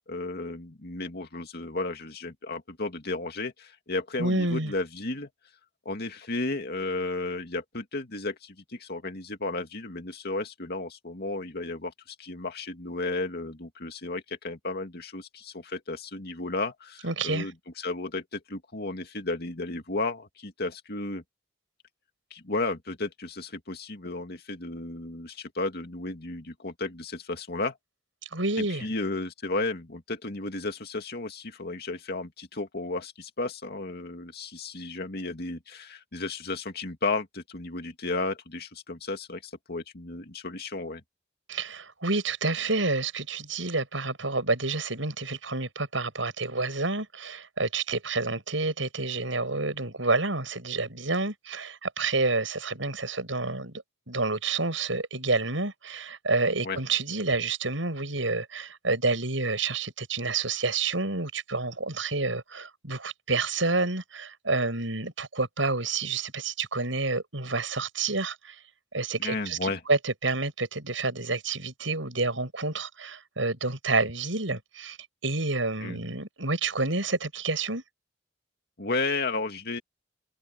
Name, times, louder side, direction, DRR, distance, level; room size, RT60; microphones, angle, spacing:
voice 1, 0.1-5.3 5.8-17.5 17.8-21.2 22.3-27.8 28.6-41.0 56.6-56.8 69.2-69.8 75.8-76.0 78.8-79.8, left 3 dB, 55° left, 2.4 m, -33 dB
voice 2, 4.2-4.7 17.0-17.5 28.3-28.9 41.5-68.6 68.9-75.0 75.2-77.8, right 3 dB, 80° right, 7.7 m, -29 dB
head